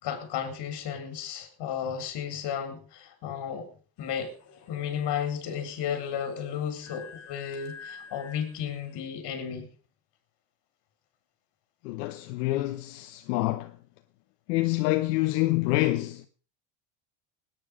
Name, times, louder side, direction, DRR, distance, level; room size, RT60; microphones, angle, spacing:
voice 1, 0.0-3.7 4.0-4.3 4.7-9.7, left 8 dB, 55° left, 4.1 m, -33 dB
sound 1, 4.0-9.0, left 6 dB, 35° left, 4.9 m, -50 dB
voice 2, 11.8-13.7 14.5-16.3, left 18 dB, 85° left, 1.1 m, -27 dB
17.5 x 9.9 x 5.1 m
supercardioid pair, 110°, 47 cm